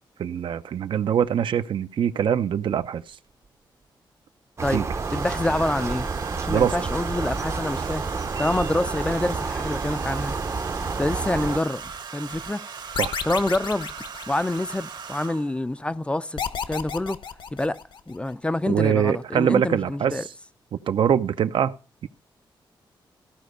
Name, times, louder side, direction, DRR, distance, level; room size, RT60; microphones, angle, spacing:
voice 1, 0.2-3.0 4.7-4.9 6.5-6.7 13.0-13.2 18.7-20.2 20.9-21.7 22.0-22.1, right 8 dB, 70° right, 0.7 m, -23 dB
Domestic sounds home sounds, 3.1-3.5 4.9-15.6 16.9-17.1 17.4-17.8, right 6 dB, 55° right, 1.2 m, -39 dB
sound 1, 4.6-11.6, right 4 dB, 35° right, 0.7 m, -29 dB
voice 2, 5.1-6.1 6.4-8.1 8.4-10.4 11.0-12.6 13.2-13.9 14.3-16.4 16.7-17.2 17.5-17.8 18.1-20.2, left 1 dB, 15° left, 0.4 m, -26 dB
sound 2, 12.9-14.9 16.4-18.2, left 6 dB, 65° left, 1.0 m, -32 dB
15.0 x 5.2 x 6.6 m
wide cardioid pair, 115°, 9 cm